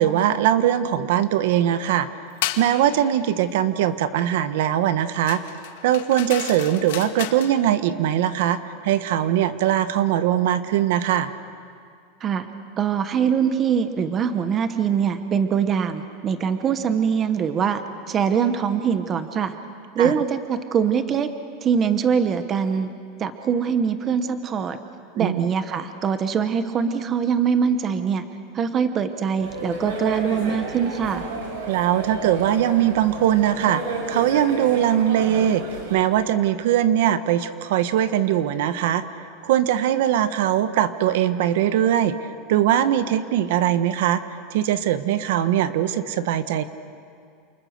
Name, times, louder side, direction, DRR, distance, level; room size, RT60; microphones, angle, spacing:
voice 1, 0.0-2.1 2.6-5.4 5.8-11.3 20.0-20.1 25.2-25.4 31.7-35.6 35.9-39.0 39.4-44.2 44.5-46.6, right 11 dB, 65° right, 12 dB, 1.2 m, -21 dB
sound 1, 2.4-2.7 5.3-7.5, left 12 dB, 75° left, 1.9 m, -32 dB
voice 2, 12.8-17.8 18.1-19.6 19.9-21.3 21.6-22.9 23.2-24.8 25.1-28.2 28.5-31.3, right 7 dB, 20° right, 10 dB, 1.0 m, -23 dB
sound 2, 29.4-35.9, right 3 dB, 85° right, 7.5 m, -32 dB
29.0 x 29.0 x 6.7 m, 2.3 s
supercardioid pair, 175°, 0 cm